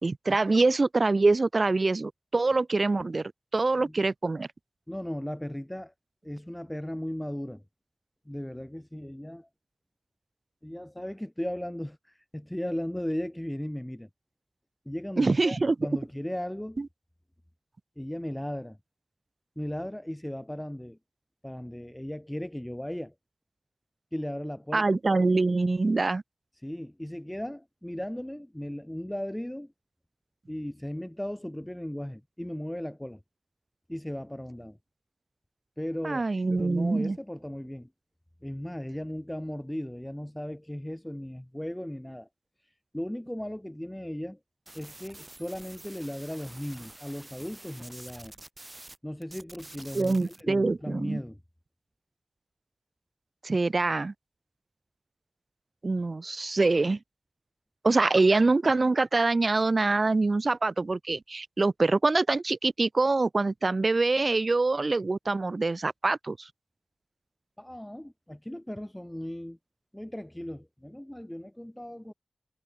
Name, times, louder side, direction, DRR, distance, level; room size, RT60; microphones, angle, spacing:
voice 1, 0.0-4.5 15.2-15.8 16.8-16.9 24.7-26.2 36.0-37.2 49.9-51.2 53.4-54.1 55.8-57.0 57.8-66.5, right 3 dB, 60° right, 0.5 m, -25 dB
voice 2, 4.9-5.9 6.2-7.6 8.3-9.5 10.6-14.1 14.9-16.8 18.0-18.8 19.6-21.0 21.4-23.1 24.1-24.8 26.6-29.7 30.5-33.2 33.9-34.8 35.8-36.2 36.5-37.9 38.4-42.3 42.9-44.4 44.7-48.3 49.0-51.4 67.6-69.6 69.9-72.1, left 1 dB, 10° left, 0.9 m, -36 dB
sound 1, 44.7-49.0 49.2-50.4, right 1 dB, 30° right, 1.4 m, -48 dB
wide cardioid pair, 55°, 0 cm